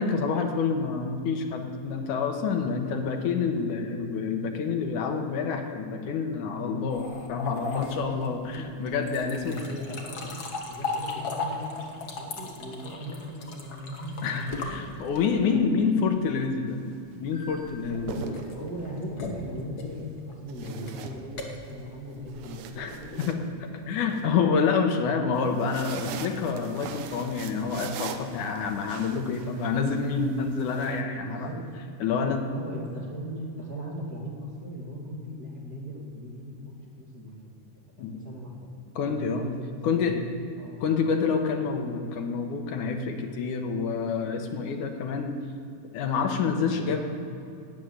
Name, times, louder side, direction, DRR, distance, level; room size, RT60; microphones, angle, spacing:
voice 1, 0.0-9.6 14.2-16.8 17.2-18.2 22.8-22.9 23.2-31.5 32.0-32.4 38.0-38.1 39.0-39.4 39.8-40.2 40.8-45.4 45.9-47.0, left 5 dB, 75° left, 4 dB, 2.5 m, -27 dB
sound 1, 6.9-15.5 17.3-23.0, left 3 dB, 45° left, 1.3 m, -38 dB
voice 2, 9.2-10.3 10.6-15.2 15.7-15.8 18.1-23.5 31.2-31.6 32.0-32.1 32.4-37.4 38.0-40.3 40.6-40.8 46.6-47.0, equal, 35° right, -3 dB, 2.2 m, -38 dB
sound 2, 16.7-16.9 17.8-19.0 20.5-21.7 22.1-24.2 25.3-31.0, right 7 dB, 85° right, 2.4 m, -42 dB
12.5 x 8.6 x 9.4 m, 2.6 s
omnidirectional pair, 3.7 m